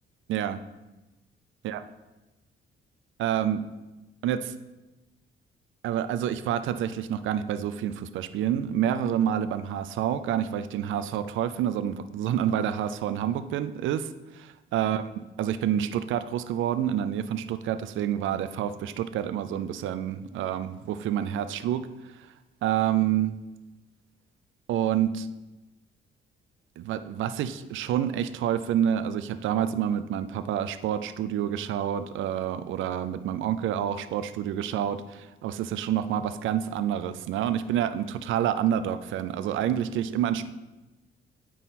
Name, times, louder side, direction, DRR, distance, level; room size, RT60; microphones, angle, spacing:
voice 1, 3.2-3.6 4.2-4.5 5.8-21.9 22.2-22.3 22.6-23.3 24.7-25.3 26.8-40.4, right 10 dB, 80° right, 12 dB, 0.4 m, -28 dB
9.1 x 3.8 x 4.2 m, 1.1 s
cardioid pair, 90°, 20 cm